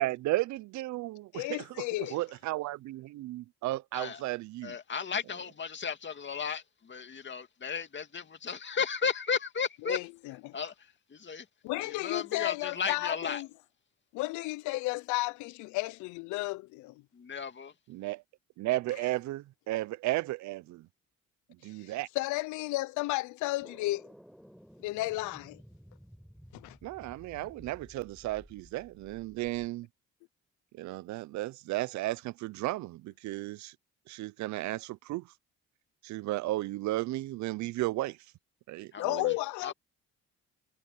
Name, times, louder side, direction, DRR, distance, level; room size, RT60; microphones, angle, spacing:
voice 1, 0.0-1.8 2.1-4.8 17.9-18.2 18.6-20.9 21.6-22.1 26.8-29.9 30.7-33.8 34.1-35.3 36.0-38.2 38.7-39.3, right 17 dB, 75° right, 0.6 m, -34 dB
voice 2, 1.3-2.2 9.8-10.6 11.6-13.5 14.1-16.9 21.7-24.1 24.8-25.6 26.5-26.8 39.0-39.7, left 20 dB, 85° left, 0.6 m, -33 dB
voice 3, 4.6-10.0 10.5-10.7 11.1-11.4 11.8-13.4 17.1-17.7 38.9-39.0 39.6-39.7, left 6 dB, 40° left, 2.5 m, -34 dB
sound 1, 23.6-29.7, equal, ahead, 5.9 m, -55 dB
supercardioid pair, 80°, 29 cm